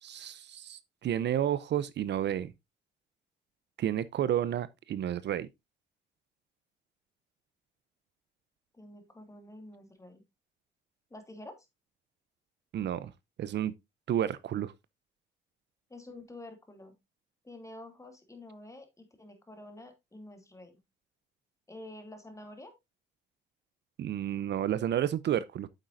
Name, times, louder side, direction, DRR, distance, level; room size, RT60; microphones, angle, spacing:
voice 1, 0.0-2.5 3.8-5.5 12.7-13.1 13.4-13.7 14.1-14.7 24.0-25.7, right 10 dB, 60° right, 0.6 m, -31 dB
voice 2, 8.7-10.2 11.1-11.7 15.9-16.9 17.4-20.8 21.7-22.7, left 1 dB, 15° left, 2.6 m, -48 dB
9.1 x 7.3 x 2.6 m
cardioid pair, 90°, 20 cm